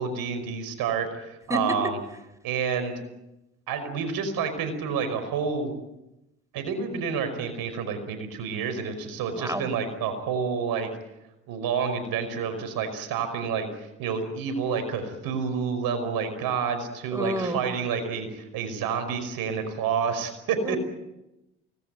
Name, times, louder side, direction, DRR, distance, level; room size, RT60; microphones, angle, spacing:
voice 1, 0.0-2.0 2.4-2.9 3.7-5.7 6.5-10.9 11.5-20.8, right 6 dB, 70° right, 9 dB, 5.3 m, -29 dB
voice 2, 9.3-9.7 17.1-17.6 20.7-20.8, equal, 10° right, 13 dB, 3.7 m, -29 dB
24.5 x 19.5 x 9.2 m, 0.94 s
hypercardioid pair, 65°, 36 cm